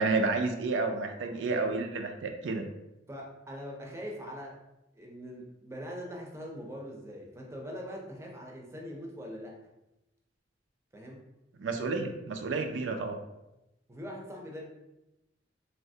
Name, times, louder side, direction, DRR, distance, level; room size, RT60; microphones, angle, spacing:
voice 1, 0.0-2.7 11.6-13.2, right 3 dB, 80° right, 5 dB, 0.4 m, -30 dB
voice 2, 3.1-4.6 4.9-9.6 10.9-11.3 13.9-14.6, equal, 15° right, -1 dB, 0.5 m, -42 dB
3.1 x 2.8 x 2.7 m, 0.92 s
head